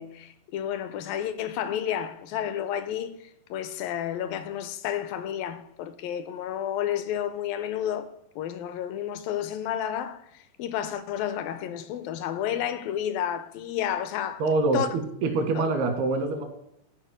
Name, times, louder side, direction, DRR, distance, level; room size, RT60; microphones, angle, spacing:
voice 1, 0.0-8.1 8.4-14.4 14.7-14.9 15.6-15.7, left 10 dB, 80° left, 2.2 m, -31 dB
voice 2, 14.4-16.4, right 3 dB, 85° right, 3.6 m, -25 dB
13.5 x 5.0 x 6.3 m
omnidirectional pair, 4.5 m